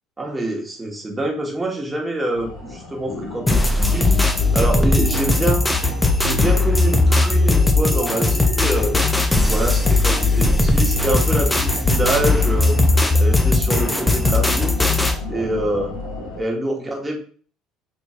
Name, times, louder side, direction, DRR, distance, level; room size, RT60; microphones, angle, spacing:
voice 1, 0.2-4.2 4.5-5.7 6.2-9.0 9.5-12.8 13.2-14.9 15.3-16.0 16.3-17.2, right 1 dB, 15° right, -1 dB, 1.2 m, -26 dB
sound 1, 2.3-16.4, left 2 dB, 60° left, 1.6 m, -33 dB
sound 2, 3.5-15.2, left 2 dB, 10° left, 0.5 m, -18 dB
4.1 x 3.0 x 2.4 m, 0.43 s
supercardioid pair, 100°, 0 cm